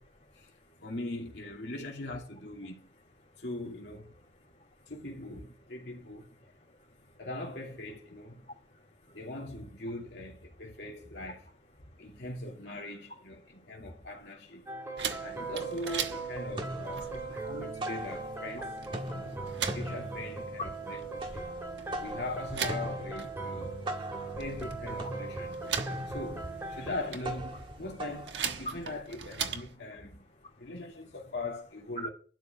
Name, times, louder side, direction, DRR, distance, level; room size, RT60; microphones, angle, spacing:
voice 1, 0.2-0.7 4.6-4.7 6.4-7.1 8.5-9.2 13.5-13.9 14.8-14.9 17.5-17.6 19.1-19.8 21.5-22.0 26.0-26.1 28.6-28.8 30.4-30.7 32.0-32.1, right 1 dB, 40° left, 3.0 m, -48 dB
voice 2, 0.8-2.9 3.4-4.1 4.9-6.3 7.2-8.5 9.1-11.4 12.0-14.7 15.2-18.7 19.2-21.4 22.0-23.8 24.3-25.7 26.1-30.2 30.6-32.1, left 2 dB, 70° left, 2.7 m, -41 dB
sound 1, 14.7-26.9, right 3 dB, 15° right, 3.0 m, -39 dB
sound 2, 15.0-15.1 15.4-16.1 16.4-18.6 18.8-29.0, right 1 dB, 30° right, 1.7 m, -41 dB
sound 3, 15.0-29.8, right 7 dB, 85° right, 1.3 m, -41 dB
12.0 x 5.0 x 8.7 m
head